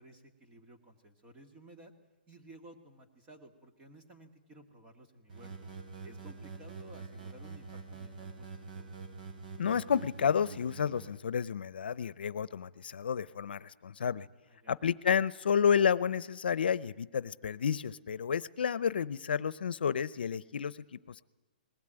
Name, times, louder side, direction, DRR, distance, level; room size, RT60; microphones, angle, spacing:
voice 1, 0.0-1.9 2.3-5.5 6.0-8.9 14.4-14.8, right 1 dB, 15° right, 4 dB, 1.9 m, -55 dB
sound 1, 5.3-11.2, right 4 dB, 55° right, 4.0 m, -46 dB
voice 2, 9.6-14.3 14.7-21.2, left 7 dB, 85° left, 19 dB, 0.7 m, -31 dB
20.5 x 17.0 x 8.9 m, 1.1 s
hypercardioid pair, 165°, 5 cm